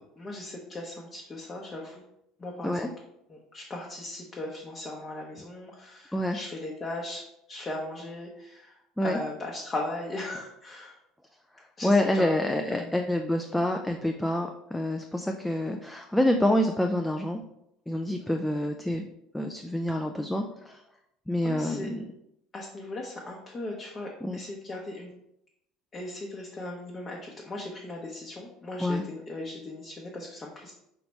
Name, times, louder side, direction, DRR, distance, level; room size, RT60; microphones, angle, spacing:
voice 1, 0.2-2.0 2.4-2.9 3.3-11.0 11.8-12.4 12.7-12.9 21.4-21.9 22.5-25.1 25.9-30.7, left 2 dB, 25° left, -1 dB, 0.8 m, -38 dB
voice 2, 11.8-17.4 17.9-19.1 19.3-20.8 21.3-22.0 24.2-24.4 28.8-29.0, left 1 dB, 5° left, 3 dB, 0.4 m, -27 dB
4.7 x 2.9 x 3.3 m, 0.80 s
figure-of-eight pair, 65°, 0 cm